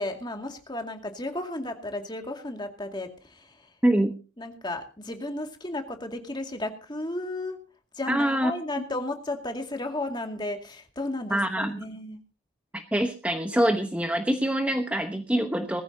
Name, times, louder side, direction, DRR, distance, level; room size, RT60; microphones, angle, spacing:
voice 1, 0.0-3.8 4.4-7.6 7.9-12.2, left 2 dB, 20° left, 4 dB, 2.2 m, -34 dB
voice 2, 3.8-4.1 8.1-8.5 11.3-11.7 12.7-15.8, right 1 dB, 5° right, 5 dB, 1.0 m, -25 dB
20.5 x 14.5 x 2.8 m, 0.34 s
head